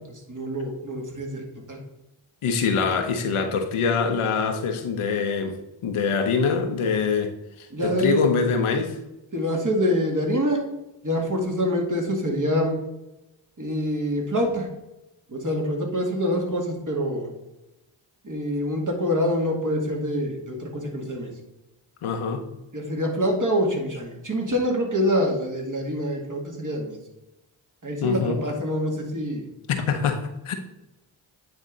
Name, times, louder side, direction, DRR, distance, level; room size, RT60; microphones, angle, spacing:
voice 1, 0.3-1.8 7.7-8.2 9.3-10.7 11.0-12.7 13.6-14.7 15.3-17.3 18.2-21.3 22.7-27.0 27.8-29.5, equal, 40° right, 0 dB, 2.1 m, -25 dB
voice 2, 2.4-9.0 22.0-22.5 28.0-28.4 29.7-30.5, left 5 dB, 80° left, 6 dB, 1.0 m, -24 dB
9.3 x 3.5 x 4.0 m, 0.95 s
cardioid pair, 45°, 50 cm